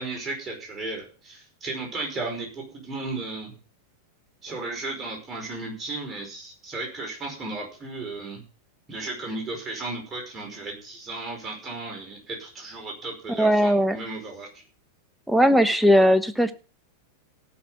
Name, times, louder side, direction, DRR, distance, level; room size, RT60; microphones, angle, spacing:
voice 1, 0.0-3.5 4.4-8.4 8.9-14.6, right 3 dB, 20° right, 0 dB, 5.1 m, -35 dB
voice 2, 13.3-14.0 15.3-16.5, equal, ahead, 11 dB, 1.0 m, -19 dB
17.0 x 6.0 x 5.9 m, 0.37 s
figure-of-eight pair, 90°, 0 cm